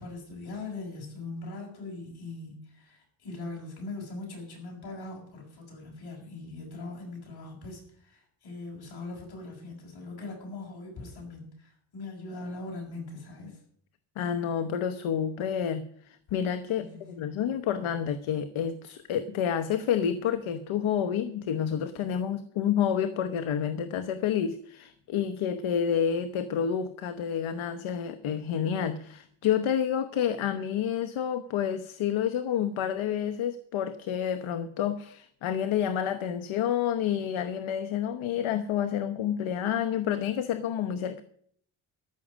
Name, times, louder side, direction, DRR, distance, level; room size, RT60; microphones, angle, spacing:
voice 1, 0.0-13.6 16.8-17.2, left 3 dB, 50° left, -2 dB, 6.4 m, -41 dB
voice 2, 14.2-41.2, left 8 dB, 70° left, 9 dB, 1.0 m, -29 dB
14.0 x 6.3 x 9.9 m, 0.63 s
wide cardioid pair, 175°, 50 cm